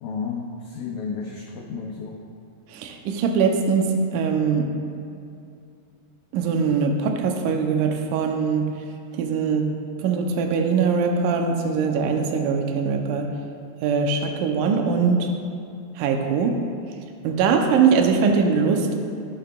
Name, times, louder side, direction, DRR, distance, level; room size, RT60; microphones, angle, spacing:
voice 1, 0.0-2.2, left 5 dB, 85° left, 0 dB, 1.6 m, -32 dB
voice 2, 2.7-4.7 6.3-8.7 9.2-9.7 10.0-13.3 13.8-15.3 16.0-16.6 17.2-18.9, right 5 dB, 80° right, 3 dB, 2.1 m, -22 dB
14.0 x 6.6 x 2.3 m, 2.4 s
omnidirectional pair, 4.0 m